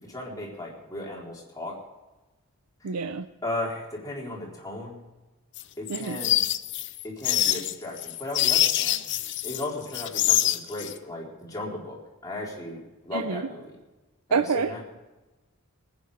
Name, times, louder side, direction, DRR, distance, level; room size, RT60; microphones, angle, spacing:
voice 1, 0.0-1.8 2.8-3.0 3.4-5.0 5.8-6.4 7.0-9.0 9.4-13.6 14.3-14.8, left 2 dB, 15° left, -3 dB, 4.1 m, -36 dB
voice 2, 2.8-3.3 5.9-6.2 13.1-13.4 14.3-15.0, right 5 dB, 90° right, 11 dB, 0.6 m, -27 dB
sound 1, 5.6-9.6 9.9-10.9, left 13 dB, 55° left, 0.6 m, -25 dB
20.5 x 9.5 x 5.0 m, 1.1 s
head